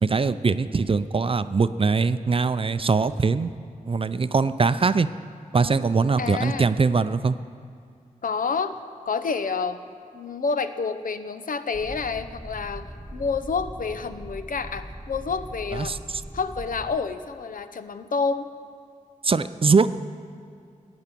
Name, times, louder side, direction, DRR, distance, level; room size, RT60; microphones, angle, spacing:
voice 1, 0.0-3.5 3.9-5.1 5.5-7.4 15.7-16.0 19.2-19.9, right 4 dB, 40° right, 13 dB, 0.5 m, -22 dB
voice 2, 6.2-6.7 8.2-8.8 9.1-9.8 10.1-16.0 16.3-18.5, left 5 dB, 75° left, 10 dB, 0.7 m, -28 dB
sound 1, 11.7-17.0, right 1 dB, 5° right, 1.2 m, -40 dB
15.5 x 9.5 x 6.9 m, 2.4 s
wide cardioid pair, 70°, 14 cm